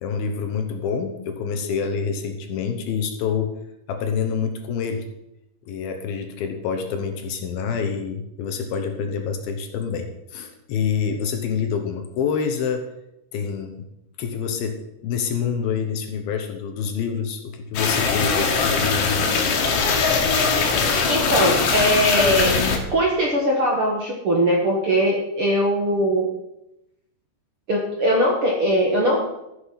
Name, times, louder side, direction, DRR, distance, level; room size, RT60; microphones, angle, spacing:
voice 1, 0.0-3.5 3.9-5.1 5.7-12.8 13.3-13.8 14.2-14.8 15.0-19.3, left 6 dB, 70° left, 5 dB, 2.7 m, -27 dB
sound 1, 17.8-22.8, left 5 dB, 90° left, 3.9 m, -21 dB
voice 2, 21.1-22.5 22.9-26.3 27.7-29.2, equal, 50° right, -2 dB, 1.7 m, -20 dB
14.5 x 8.1 x 5.8 m, 0.88 s
omnidirectional pair, 4.8 m